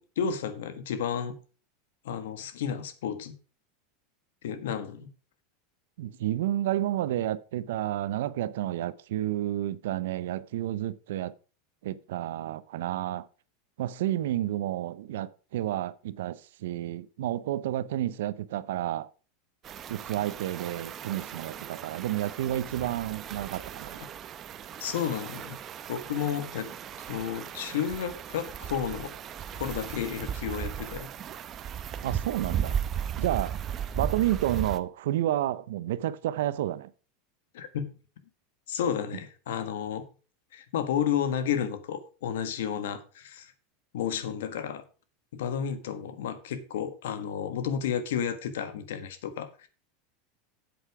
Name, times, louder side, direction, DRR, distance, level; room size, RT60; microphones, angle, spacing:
voice 1, 0.0-1.3 2.0-3.3 4.4-5.1 24.8-25.6 25.9-26.7 27.1-29.1 29.5-31.1 37.5-37.9 38.7-40.0 40.5-43.5 43.9-44.8 45.3-49.7, left 8 dB, 85° left, 1.4 m, -32 dB
voice 2, 6.0-11.3 11.8-13.3 13.8-19.1 19.9-24.0 32.0-32.8 33.2-33.6 33.9-36.9, right 13 dB, 85° right, 0.6 m, -30 dB
sound 1, 19.6-34.8, right 9 dB, 30° right, 0.8 m, -36 dB
8.3 x 7.9 x 4.9 m
supercardioid pair, 140°, 0 cm